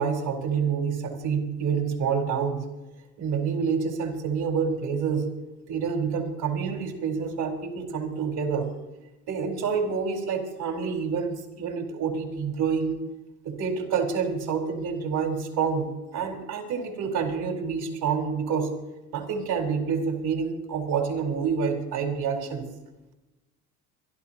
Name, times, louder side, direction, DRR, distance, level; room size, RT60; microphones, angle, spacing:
voice 1, 0.0-2.7 3.2-5.3 5.7-8.7 9.3-13.0 13.4-18.7 19.1-22.6, right 6 dB, 55° right, 1 dB, 4.4 m, -28 dB
27.0 x 12.0 x 3.0 m, 1.1 s
hypercardioid pair, 70°, 43 cm